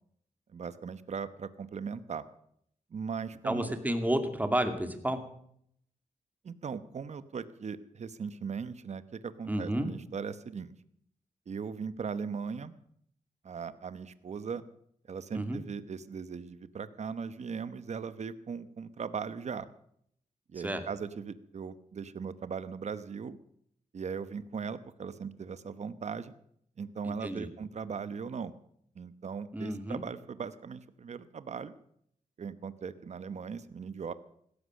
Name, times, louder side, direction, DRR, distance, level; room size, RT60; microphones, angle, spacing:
voice 1, 0.5-2.2 2.9-3.7 6.4-10.7 11.5-12.7 13.4-14.6 15.1-19.7 20.5-23.4 23.9-26.3 26.8-28.5 28.9-31.7 32.4-34.1, right 6 dB, 55° right, 14 dB, 1.0 m, -39 dB
voice 2, 3.4-5.2 9.5-9.9 15.3-15.6 20.6-20.8 27.0-27.5 29.5-30.0, right 1 dB, 10° right, 7 dB, 2.4 m, -31 dB
16.5 x 13.5 x 6.4 m, 0.68 s
cardioid pair, 85°, 14 cm